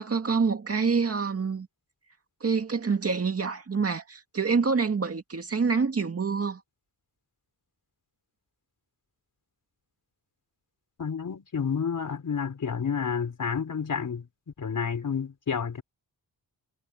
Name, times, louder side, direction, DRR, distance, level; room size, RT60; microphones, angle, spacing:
voice 1, 0.0-1.7 2.4-6.6, right 5 dB, 40° right, 2.1 m, -26 dB
voice 2, 11.0-14.3 14.6-15.8, left 6 dB, 55° left, 4.8 m, -30 dB
wide cardioid pair, 155°, 37 cm